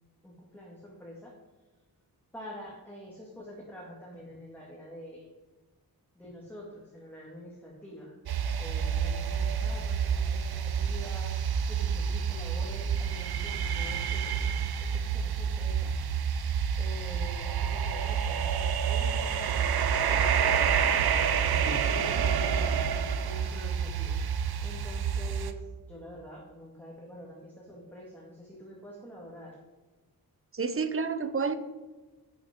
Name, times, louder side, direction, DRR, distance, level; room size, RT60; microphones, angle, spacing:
voice 1, 0.2-1.3 2.3-5.3 6.1-8.2 8.6-16.5 16.8-19.7 21.3-22.6 23.2-29.5, equal, 5° left, -4 dB, 2.3 m, -46 dB
sound 1, 8.3-25.5, right 7 dB, 85° right, 0.8 m, -28 dB
voice 2, 30.5-31.6, right 5 dB, 35° right, 11 dB, 0.8 m, -30 dB
11.0 x 8.7 x 5.3 m, 1.2 s
wide cardioid pair, 155°, 37 cm